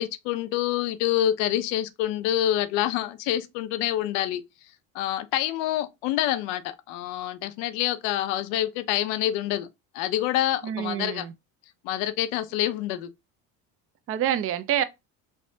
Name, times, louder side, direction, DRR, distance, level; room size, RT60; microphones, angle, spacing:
voice 1, 0.0-4.4 4.9-9.7 9.9-11.2 11.8-13.1, left 12 dB, 85° left, 0.6 m, -27 dB
voice 2, 10.6-11.3 14.1-14.8, right 10 dB, 35° right, 0.4 m, -27 dB
3.3 x 2.0 x 2.7 m
supercardioid pair, 95°, 40 cm